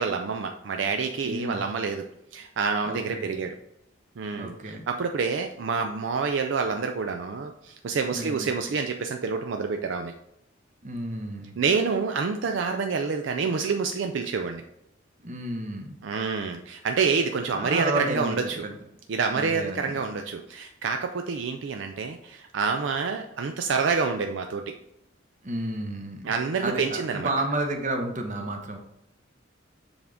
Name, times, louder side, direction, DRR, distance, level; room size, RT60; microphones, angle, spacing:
voice 1, 0.0-2.0 2.3-3.5 4.2-10.1 11.6-14.6 16.0-18.7 19.1-24.8 26.2-27.3, right 5 dB, 65° right, 5 dB, 0.4 m, -27 dB
voice 2, 1.2-1.7 2.8-3.3 4.3-4.8 8.1-8.6 10.8-11.6 15.2-16.0 17.5-18.7 19.3-20.0 25.4-26.3 26.6-28.8, right 1 dB, 40° right, 4 dB, 0.9 m, -31 dB
7.0 x 3.5 x 3.8 m, 0.83 s
head